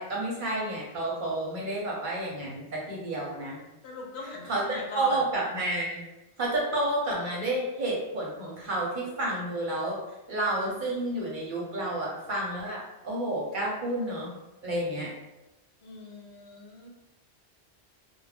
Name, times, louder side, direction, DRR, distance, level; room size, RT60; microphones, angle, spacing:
voice 1, 0.0-3.6 4.5-6.0 6.4-10.0 10.3-14.3 14.6-15.1, right 1 dB, 55° right, -4 dB, 0.7 m, -30 dB
voice 2, 3.8-5.2 15.8-16.9, left 2 dB, 75° left, -1 dB, 0.9 m, -40 dB
2.4 x 2.1 x 3.3 m, 1.0 s
omnidirectional pair, 1.1 m